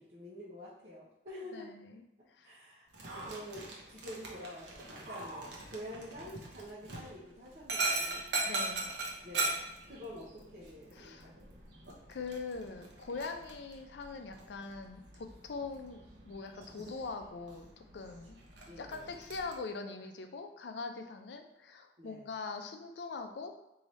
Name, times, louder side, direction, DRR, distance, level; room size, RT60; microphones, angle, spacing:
voice 1, 0.0-1.7 2.4-8.2 9.2-9.6 9.9-11.2 11.4-11.6 18.7-19.2 22.0-22.3, equal, 40° right, -11 dB, 0.9 m, -47 dB
voice 2, 1.5-1.9 2.3-2.5 8.5-8.9 10.9-11.3 12.1-17.7 17.9-18.4 18.8-23.6, left 4 dB, 75° left, 6 dB, 0.4 m, -42 dB
Dog, 2.9-19.5, right 3 dB, 80° right, 0.8 m, -41 dB
3.1 x 2.7 x 4.1 m, 0.89 s
head